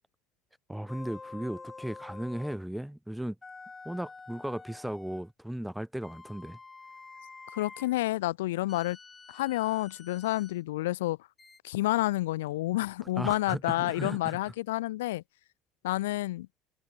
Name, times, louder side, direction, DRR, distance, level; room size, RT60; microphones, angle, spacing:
voice 1, 0.7-3.4 3.9-6.6 13.2-14.4, right 1 dB, 5° right, 0.4 m, -36 dB
sound 1, 0.9-2.7 3.4-5.3 6.0-7.9 8.7-10.6 11.4-11.6, left 4 dB, 20° left, 2.2 m, -48 dB
voice 2, 7.5-9.0 9.3-11.2 11.6-15.2 15.8-16.5, left 17 dB, 90° left, 0.5 m, -29 dB
supercardioid pair, 80°, 0 cm